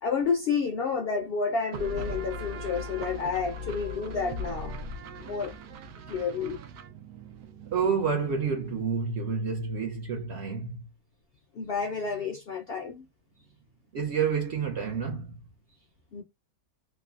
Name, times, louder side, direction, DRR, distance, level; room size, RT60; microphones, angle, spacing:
voice 1, 0.0-4.7 5.3-5.5 6.1-6.6 11.5-13.1 16.1-16.2, left 5 dB, 70° left, 0.6 m, -30 dB
sound 1, 1.7-9.1, equal, 90° right, 1.1 m, -39 dB
voice 2, 7.7-10.8 13.9-15.3, right 6 dB, 65° right, 0.6 m, -29 dB
3.2 x 2.0 x 2.3 m
omnidirectional pair, 1.6 m